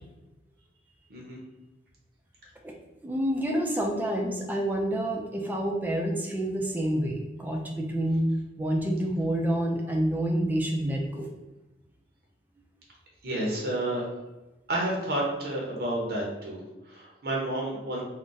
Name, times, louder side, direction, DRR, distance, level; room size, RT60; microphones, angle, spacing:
voice 1, 3.0-8.3 8.6-11.3, right 1 dB, 10° right, 0 dB, 0.4 m, -28 dB
voice 2, 13.2-14.0 14.7-18.0, right 1 dB, 55° right, -3 dB, 0.7 m, -30 dB
2.4 x 2.1 x 3.8 m, 1.1 s
head